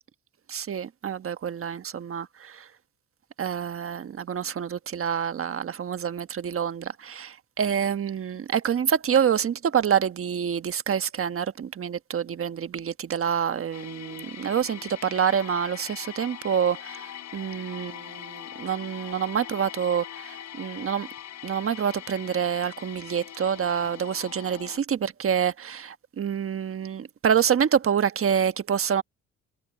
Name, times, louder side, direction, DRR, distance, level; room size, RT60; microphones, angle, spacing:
voice 1, 0.5-2.6 3.4-17.1 17.3-21.1 21.4-29.0, right 8 dB, 45° right, 1.2 m, -27 dB
sound 1, 13.7-24.8, left 11 dB, 65° left, 5.0 m, -42 dB
cardioid pair, 90°, 30 cm